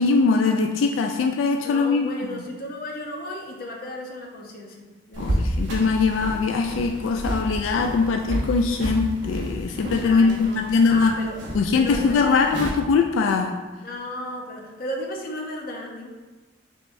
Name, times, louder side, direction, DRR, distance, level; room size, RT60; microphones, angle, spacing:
voice 1, 0.0-2.1 5.2-11.1 11.5-13.6, left 4 dB, 90° left, 3 dB, 0.3 m, -21 dB
voice 2, 1.6-5.6 10.0-11.4 11.7-12.4 13.8-16.1, left 1 dB, 50° left, 0 dB, 0.7 m, -34 dB
sound 1, 5.1-12.7, right 1 dB, 65° right, 0.9 m, -30 dB
5.2 x 3.2 x 2.5 m, 1.2 s
head